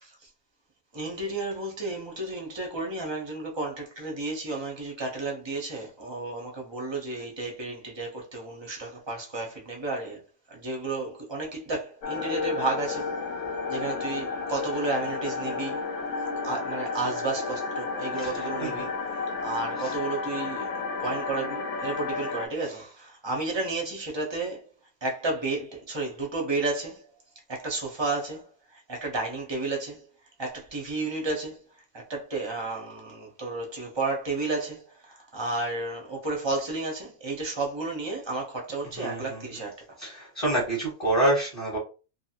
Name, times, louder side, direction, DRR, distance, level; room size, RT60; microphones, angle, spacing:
voice 1, 0.9-10.2 10.5-13.1 13.7-15.8 16.4-20.7 21.0-24.6 25.0-27.0 27.5-30.0 30.4-31.6 31.9-39.7, right 3 dB, 35° right, 0.4 m, -32 dB
sound 1, 12.0-22.5, left 4 dB, 75° left, 1.0 m, -32 dB
voice 2, 18.2-18.9 19.8-19.9 39.0-39.4 40.0-41.8, right 1 dB, 30° left, 1.0 m, -27 dB
2.7 x 2.6 x 2.8 m
omnidirectional pair, 1.7 m